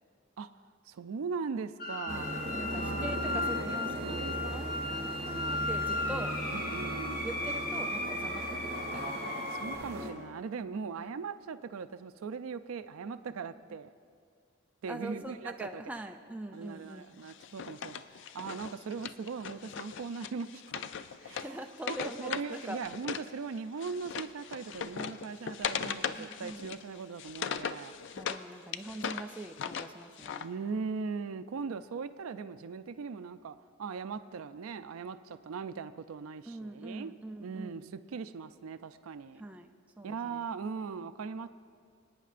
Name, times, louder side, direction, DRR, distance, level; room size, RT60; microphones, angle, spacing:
voice 1, 0.9-3.7 4.0-4.4 6.5-7.3 9.3-13.9 14.8-15.8 16.5-20.9 21.2-27.9 30.4-37.1 37.4-39.4 40.0-41.5, right 5 dB, 85° right, 12 dB, 0.4 m, -40 dB
sound 1, 1.8-9.8, left 2 dB, 45° left, 1.3 m, -36 dB
sound 2, 2.1-10.1, right 1 dB, 55° right, 1.5 m, -38 dB
voice 2, 2.5-6.3 7.2-9.1 11.0-11.1 14.9-17.1 21.2-22.8 25.8-25.9 26.2-26.7 28.1-30.5 36.5-37.8 39.4-39.7 40.0-40.4, right 1 dB, 5° right, 4 dB, 0.4 m, -43 dB
Wood, 17.3-23.3 23.6-28.4 28.7-30.5, left 7 dB, 60° left, 0.4 m, -39 dB
26.0 x 9.4 x 2.5 m, 2.1 s
head